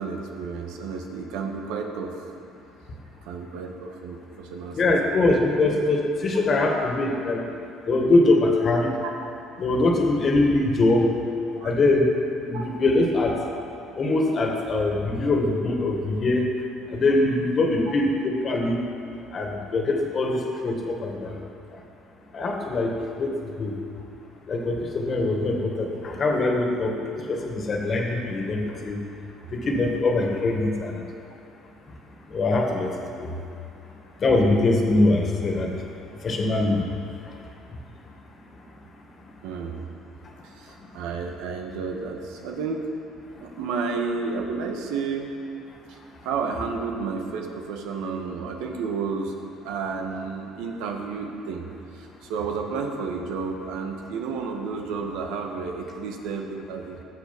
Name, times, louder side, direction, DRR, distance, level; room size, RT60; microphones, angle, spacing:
voice 1, 0.0-2.3 3.2-4.9 9.0-9.1 11.6-11.7 12.5-12.7 29.4-29.6 39.4-39.8 40.4-42.9 43.4-45.3 45.9-49.3 49.6-51.7 51.9-57.0, right 5 dB, 85° right, 3 dB, 1.6 m, -31 dB
voice 2, 4.7-7.4 7.9-8.9 9.6-11.1 11.6-12.1 12.5-13.4 14.0-16.4 16.9-18.8 19.3-20.4 20.6-21.4 22.3-23.3 23.6-23.7 24.5-26.9 27.3-29.0 29.5-31.0 32.3-32.9 33.2-33.3 34.2-35.8 36.2-36.9, left 2 dB, 40° left, 1 dB, 2.0 m, -22 dB
19.0 x 7.3 x 5.4 m, 2.6 s
cardioid pair, 110°, 0 cm